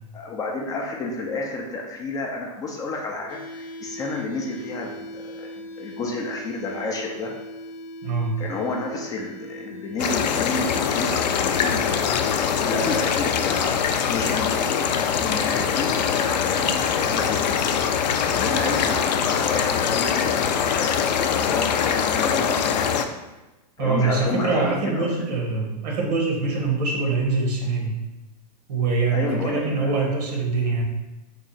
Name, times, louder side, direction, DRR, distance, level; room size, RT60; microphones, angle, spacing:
voice 1, 0.1-7.3 8.4-14.9 15.2-17.4 18.2-23.1 23.8-25.7 29.1-30.0, left 3 dB, 15° left, 0 dB, 0.3 m, -31 dB
sound 1, 3.3-17.2, left 1 dB, 55° left, 0.8 m, -41 dB
voice 2, 8.0-8.3 23.8-27.9 28.7-30.8, right 3 dB, 70° right, 0 dB, 1.1 m, -24 dB
sound 2, 10.0-23.0, left 7 dB, 80° left, 0.4 m, -23 dB
3.6 x 2.1 x 3.9 m, 1.1 s
hypercardioid pair, 135°, 21 cm